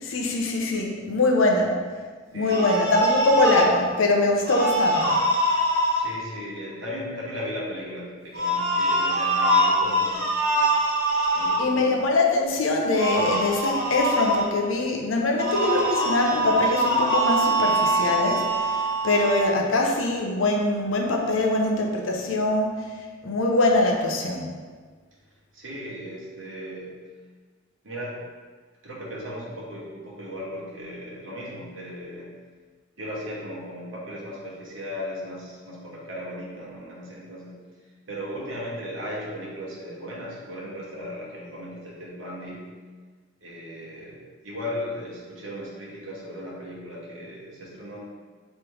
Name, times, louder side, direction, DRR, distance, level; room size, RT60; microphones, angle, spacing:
voice 1, 0.0-1.8 2.3-5.2 11.6-22.9 23.2-24.5, left 2 dB, 75° left, 1 dB, 0.6 m, -23 dB
voice 2, 2.3-2.8 5.9-10.4 11.3-11.9 25.5-26.9 27.8-28.2 28.8-32.3 33.0-37.6 38.1-42.7 43.4-44.2 44.4-48.0, equal, 70° right, -5 dB, 1.1 m, -36 dB
sound 1, 2.4-3.7 4.4-6.0 8.3-11.6 12.9-14.4 15.4-19.5, right 1 dB, 50° right, 1.2 m, -23 dB
3.3 x 3.0 x 4.8 m, 1.5 s
head